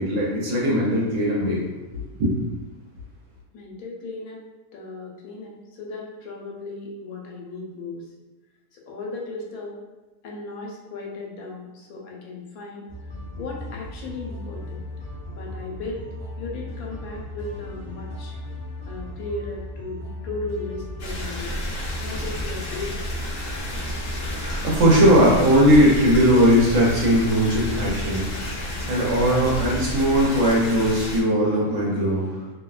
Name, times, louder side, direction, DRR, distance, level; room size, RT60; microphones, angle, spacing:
voice 1, 0.0-1.6 1.9-2.3 23.4-32.4, equal, 65° right, -4 dB, 0.9 m, -20 dB
voice 2, 3.5-4.4 4.7-8.1 8.7-9.8 10.2-12.9 13.4-14.8 15.3-16.1 16.4-18.4 18.9-21.6 22.0-23.0, left 3 dB, 85° left, -2 dB, 1.1 m, -36 dB
sound 1, 12.9-29.9, left 1 dB, 5° right, 1.0 m, -36 dB
sound 2, 21.0-31.2, equal, 60° left, 0.6 m, -31 dB
2.6 x 2.1 x 2.3 m, 1.1 s
omnidirectional pair, 1.5 m